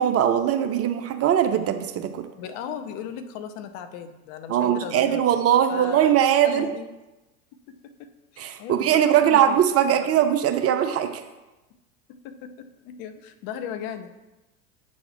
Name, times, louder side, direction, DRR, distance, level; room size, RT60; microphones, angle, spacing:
voice 1, 0.0-2.3 4.5-6.7 8.4-11.2, right 10 dB, 35° right, 7 dB, 0.7 m, -21 dB
voice 2, 2.4-5.4 5.7-6.1 6.4-6.9 7.7-9.6 12.1-14.2, left 8 dB, 55° left, 9 dB, 0.9 m, -37 dB
7.9 x 4.2 x 5.8 m, 1.1 s
hypercardioid pair, 95°, 43 cm